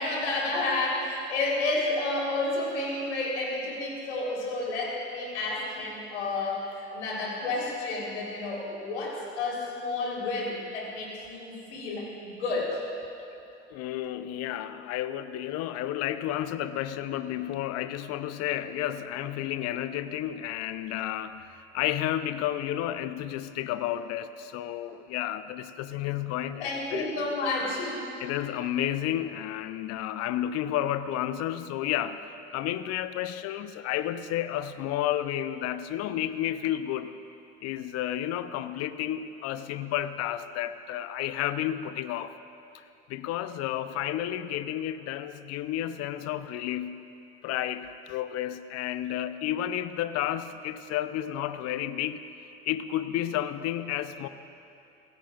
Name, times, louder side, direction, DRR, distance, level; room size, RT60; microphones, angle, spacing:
voice 1, 0.0-12.8 26.6-28.0, left 2 dB, 75° left, -3 dB, 3.9 m, -31 dB
voice 2, 13.7-27.1 28.2-32.2 32.5-37.2 37.6-42.3 43.1-47.1 47.4-52.2 52.7-54.3, left 12 dB, 45° left, 12 dB, 0.7 m, -31 dB
24.0 x 16.0 x 2.5 m, 2.9 s
figure-of-eight pair, 70°, 35 cm